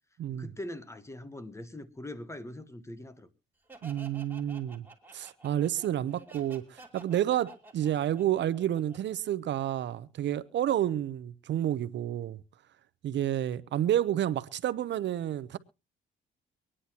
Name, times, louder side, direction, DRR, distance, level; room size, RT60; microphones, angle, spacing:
voice 1, 0.3-3.3, left 1 dB, 15° left, 1.2 m, -42 dB
Laughter, 3.7-9.4, right 2 dB, 10° right, 2.7 m, -51 dB
voice 2, 3.8-4.8 5.1-12.4 13.0-15.6, right 11 dB, 65° right, 0.7 m, -30 dB
24.5 x 10.0 x 2.9 m
cardioid pair, 90°, 20 cm